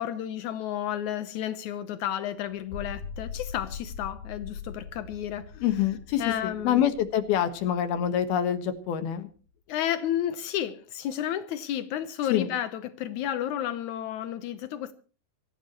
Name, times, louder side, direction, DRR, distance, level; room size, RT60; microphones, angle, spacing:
voice 1, 0.0-5.6 6.2-6.8 9.7-14.9, left 11 dB, 85° left, 1.7 m, -32 dB
sound 1, 2.5-9.0, left 6 dB, 55° left, 3.5 m, -42 dB
voice 2, 5.6-9.3 12.3-12.5, left 10 dB, 70° left, 3.3 m, -26 dB
25.0 x 15.0 x 3.1 m
omnidirectional pair, 4.7 m